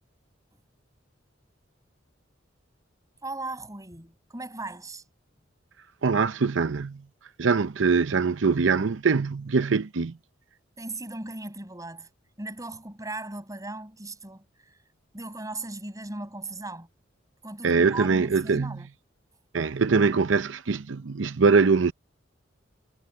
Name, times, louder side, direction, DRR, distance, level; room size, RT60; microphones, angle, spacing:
voice 1, 3.2-5.0 10.8-12.1 12.4-14.4 15.1-16.9 17.4-18.9, right 2 dB, 20° right, 7.3 m, -37 dB
voice 2, 6.0-7.0 7.4-10.1 17.6-18.8 19.5-21.9, right 4 dB, 80° right, 0.7 m, -23 dB
head